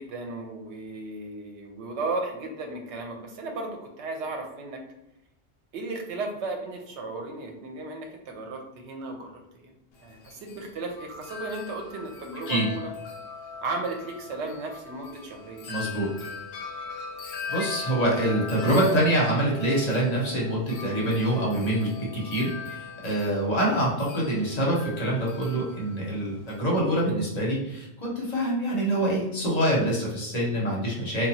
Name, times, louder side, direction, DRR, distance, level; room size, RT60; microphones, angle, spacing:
voice 1, 0.0-4.8 5.7-9.7 10.0-12.9 13.6-15.7, right 3 dB, 80° right, 2 dB, 0.9 m, -35 dB
Wind chime, 9.9-26.8, left 5 dB, 70° left, 0.8 m, -40 dB
voice 2, 15.7-16.1 17.5-31.3, right 1 dB, 40° left, -4 dB, 0.9 m, -25 dB
2.9 x 2.2 x 2.7 m, 0.88 s
omnidirectional pair, 1.2 m